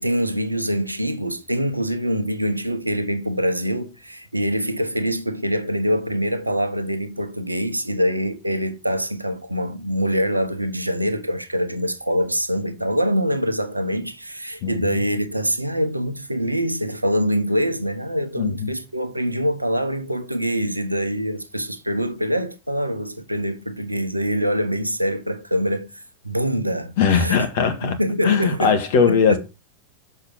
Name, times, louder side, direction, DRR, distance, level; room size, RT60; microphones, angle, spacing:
voice 1, 0.0-27.4 27.8-28.8 29.1-29.4, equal, 85° right, 1.0 m, -24 dB
voice 2, 14.6-15.0 18.4-18.7 27.0-28.0 28.2-29.4, left 6 dB, 50° left, 1.6 m, -20 dB
6.5 x 5.4 x 5.9 m
figure-of-eight pair, 90°, 0 cm